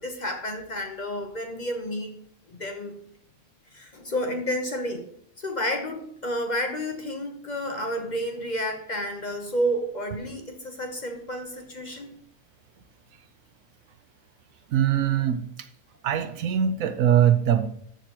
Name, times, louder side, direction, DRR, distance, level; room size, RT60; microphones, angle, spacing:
voice 1, 0.0-2.2 2.5-3.0 3.7-5.1 5.4-12.1, equal, 35° left, 3 dB, 1.0 m, -30 dB
voice 2, 14.7-15.4 16.0-17.7, right 9 dB, 75° right, 9 dB, 1.1 m, -22 dB
13.0 x 6.8 x 3.0 m, 0.66 s
omnidirectional pair, 1.5 m